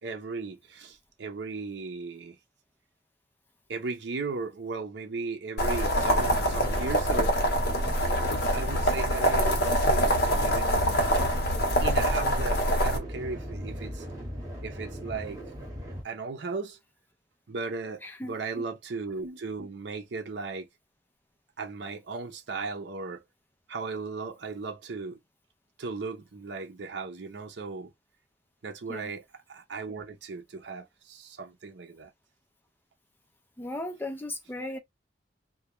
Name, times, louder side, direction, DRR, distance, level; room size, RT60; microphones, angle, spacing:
voice 1, 0.0-2.4 3.7-7.4 8.5-11.0 11.8-14.1 14.6-15.4 16.0-16.8 17.5-20.7 21.6-23.2 23.7-25.2 25.8-27.9 28.6-32.1 34.6-34.7, right 4 dB, 75° right, 0.6 m, -36 dB
sound 1, 5.6-13.0, equal, 65° left, 0.8 m, -25 dB
sound 2, 5.8-16.0, equal, 15° right, 1.2 m, -40 dB
voice 2, 18.0-18.3 28.9-29.1 33.6-34.8, left 1 dB, 10° left, 0.5 m, -36 dB
2.3 x 2.2 x 2.9 m
head